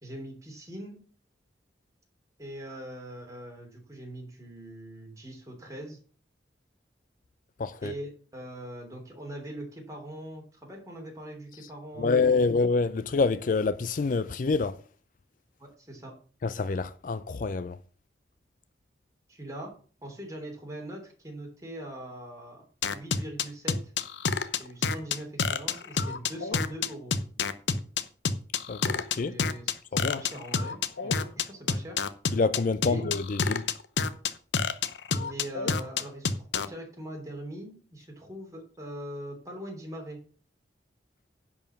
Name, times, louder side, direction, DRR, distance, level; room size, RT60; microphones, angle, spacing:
voice 1, 0.0-1.0 2.4-6.0 7.8-12.4 15.6-16.1 19.3-19.7 20.0-22.6 22.9-23.9 24.6-27.1 29.2-29.8 30.1-32.0 32.8-33.0 35.1-40.2, right 1 dB, 20° right, 3.2 m, -41 dB
voice 2, 7.6-7.9 12.0-14.8 16.4-17.8 28.7-29.3 29.9-30.2 32.3-33.7, left 4 dB, 45° left, 0.4 m, -27 dB
sound 1, 22.8-36.7, left 5 dB, 80° left, 0.8 m, -28 dB
10.5 x 4.8 x 7.2 m
head